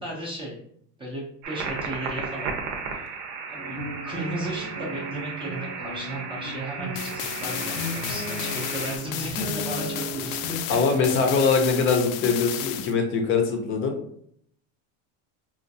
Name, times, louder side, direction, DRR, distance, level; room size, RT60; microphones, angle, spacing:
voice 1, 0.0-0.7 1.0-2.6 3.0-3.1 3.5-3.8 4.0-11.0, right 1 dB, 15° right, -4 dB, 0.5 m, -35 dB
sound 1, 1.4-9.0, right 5 dB, 70° right, 0.8 m, -35 dB
sound 2, 3.6-11.4, equal, 5° left, 0.9 m, -36 dB
sound 3, 7.0-12.9, left 11 dB, 85° left, 0.5 m, -33 dB
voice 2, 10.7-14.0, left 5 dB, 30° left, 4 dB, 0.5 m, -22 dB
4.3 x 2.4 x 2.6 m, 0.67 s
cardioid pair, 155°, 40 cm